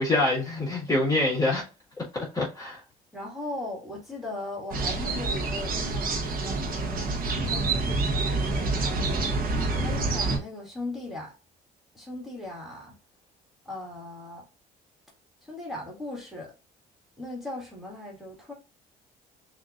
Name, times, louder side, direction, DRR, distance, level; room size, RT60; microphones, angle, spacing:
voice 1, 0.0-1.6 2.1-2.8, left 2 dB, 20° left, 2.1 m, -25 dB
voice 2, 3.1-7.2 7.5-9.3 9.8-11.3 11.9-12.9 13.6-14.4 15.4-16.5 17.2-18.5, left 1 dB, ahead, 2.3 m, -38 dB
sound 1, 4.7-10.4, right 3 dB, 60° right, 1.2 m, -27 dB
6.4 x 2.9 x 2.6 m
cardioid pair, 110°, 17 cm